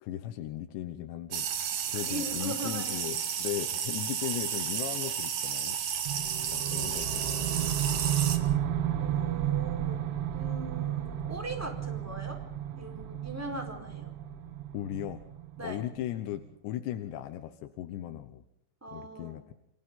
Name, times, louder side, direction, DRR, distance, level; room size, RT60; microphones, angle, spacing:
voice 1, 0.0-1.5 1.9-5.8 6.1-6.2 6.5-7.6 14.7-15.2 15.6-18.4 18.9-19.5, left 12 dB, 70° left, 7 dB, 3.0 m, -37 dB
sound 1, 1.3-8.4, right 8 dB, 55° right, 3.3 m, -32 dB
voice 2, 1.9-3.1 8.9-10.1 10.3-12.4 12.7-14.1 15.6-15.8 18.8-19.4, right 1 dB, 5° right, 3 dB, 3.9 m, -40 dB
sound 2, 6.1-16.1, right 11 dB, 75° right, 4.1 m, -33 dB
30.0 x 26.0 x 3.9 m, 0.79 s
omnidirectional pair, 5.8 m